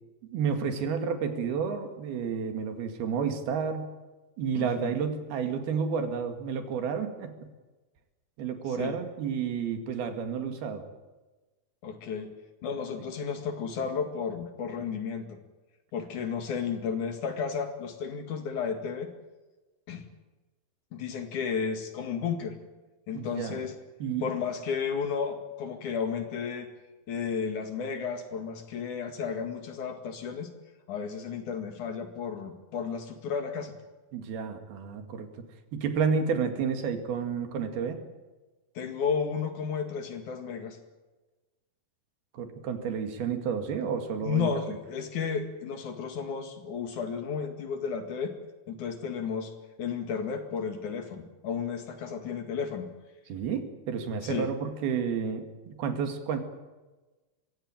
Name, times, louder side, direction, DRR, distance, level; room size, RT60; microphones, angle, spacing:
voice 1, 0.2-3.9 4.4-7.5 8.4-10.8 23.1-23.6 24.0-24.3 34.1-35.3 35.7-38.0 42.3-44.5 53.3-56.4, right 6 dB, 85° right, 6 dB, 4.1 m, -31 dB
voice 2, 4.6-4.9 8.8-9.0 11.8-12.3 12.6-15.4 15.9-19.1 19.9-20.1 20.9-22.6 23.1-23.7 24.2-26.7 27.1-30.5 30.9-33.7 38.7-40.8 44.2-48.3 48.7-49.5 49.8-52.9 54.2-54.5, left 6 dB, 60° left, 6 dB, 3.3 m, -33 dB
23.5 x 16.0 x 9.0 m, 1.2 s
omnidirectional pair, 4.3 m